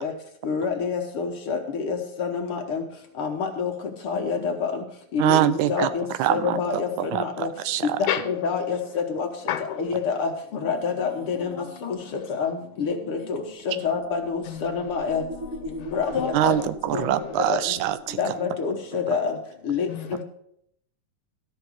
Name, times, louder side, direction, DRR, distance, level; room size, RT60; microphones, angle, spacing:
voice 1, 0.4-2.8 3.2-3.7 4.0-4.7 5.2-5.4 5.7-6.9 7.2-7.5 8.3-8.8 9.1-9.3 9.8-10.3 10.6-11.5 11.9-12.0 12.4-12.5 12.8-13.2 13.7-15.2 15.9-16.5 18.2-19.3 19.7-19.9, left 6 dB, 60° left, 1.6 m, -27 dB
voice 2, 5.2-8.0 16.3-18.3, right 12 dB, 90° right, 2.0 m, -24 dB
voice 3, 9.5-9.8 12.0-12.4 14.4-15.0 15.8-16.7 17.0-17.3 19.9-20.2, left 10 dB, 80° left, 2.3 m, -33 dB
sound 1, 13.6-18.3, equal, 55° right, 1.9 m, -40 dB
13.0 x 6.0 x 6.1 m
omnidirectional pair, 3.4 m